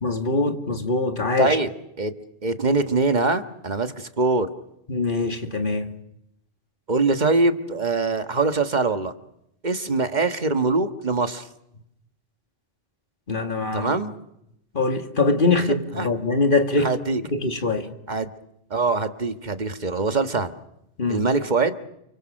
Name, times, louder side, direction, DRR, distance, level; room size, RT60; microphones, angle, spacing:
voice 1, 0.0-1.6 4.9-5.9 13.3-13.9 14.7-16.9 17.3-17.9 21.0-21.2, left 3 dB, 50° left, 2.3 m, -23 dB
voice 2, 1.4-1.7 2.0-2.1 2.4-4.5 6.9-9.1 9.6-11.5 13.7-14.1 16.0-16.1 16.8-17.2 18.1-18.3 18.7-20.5 21.1-21.7, right 3 dB, 40° right, 1.7 m, -23 dB
29.5 x 24.0 x 6.5 m
omnidirectional pair, 1.2 m